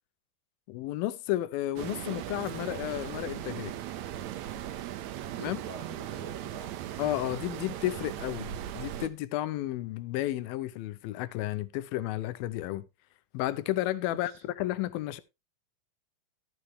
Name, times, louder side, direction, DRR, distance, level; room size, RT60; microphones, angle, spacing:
voice 1, 0.7-3.7 5.4-5.6 7.0-12.9 13.3-15.2, left 15 dB, 90° left, 2.5 m, -32 dB
sound 1, 1.8-9.1, right 12 dB, 75° right, 1.7 m, -38 dB
voice 2, 5.1-6.8 14.1-14.4, right 5 dB, 55° right, 2.0 m, -46 dB
12.5 x 8.5 x 3.1 m
omnidirectional pair, 4.1 m